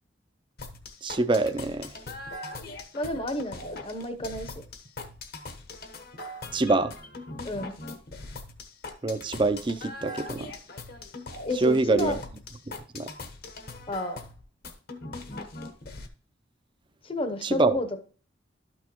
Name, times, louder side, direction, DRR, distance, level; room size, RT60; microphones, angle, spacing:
sound 1, 0.6-16.1, left 2 dB, 55° left, 1.1 m, -41 dB
voice 1, 1.0-1.9 6.5-6.9 9.0-10.5 11.6-12.2 12.9-13.1 17.4-17.8, right 3 dB, 25° right, 0.5 m, -25 dB
voice 2, 2.9-4.6 7.4-7.7 11.5-12.2 13.9-14.2 17.0-18.0, left 1 dB, 30° left, 0.8 m, -31 dB
12.0 x 6.2 x 3.0 m
head